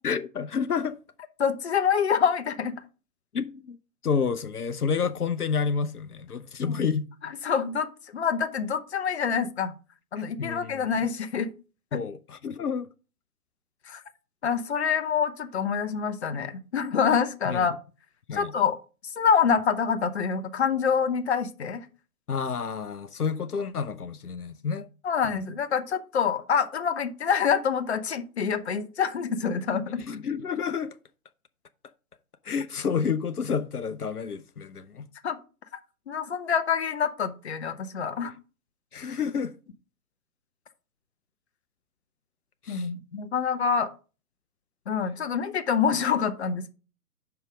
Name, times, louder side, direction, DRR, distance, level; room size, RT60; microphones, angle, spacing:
voice 1, 0.0-1.0 3.3-3.8 4.0-7.1 10.2-10.9 11.9-12.9 17.5-17.7 18.3-18.5 22.3-24.9 25.2-25.4 30.0-31.0 32.4-35.1 38.9-39.5 42.6-42.9, left 6 dB, 80° left, 0.7 m, -29 dB
voice 2, 1.4-2.7 6.6-6.7 7.2-9.7 10.1-11.5 11.9-12.0 13.9-14.0 14.4-17.7 18.3-18.8 19.0-21.9 25.0-30.0 35.2-35.4 36.1-38.3 42.7-43.9 44.9-46.7, left 7 dB, 45° left, 0.8 m, -26 dB
5.6 x 5.6 x 5.1 m
figure-of-eight pair, 130°, 44 cm